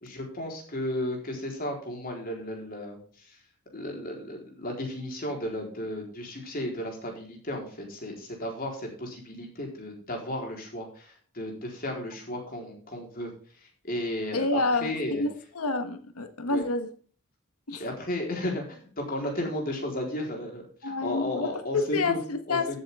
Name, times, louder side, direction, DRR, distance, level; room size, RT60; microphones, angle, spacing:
voice 1, 0.0-3.0 3.7-13.3 13.8-15.3 16.5-16.6 17.8-22.2 22.5-22.8, left 1 dB, 40° left, 4.1 m, -34 dB
voice 2, 14.3-16.9 17.7-17.8 20.8-22.8, left 3 dB, 85° left, 1.3 m, -29 dB
13.5 x 8.4 x 3.7 m
head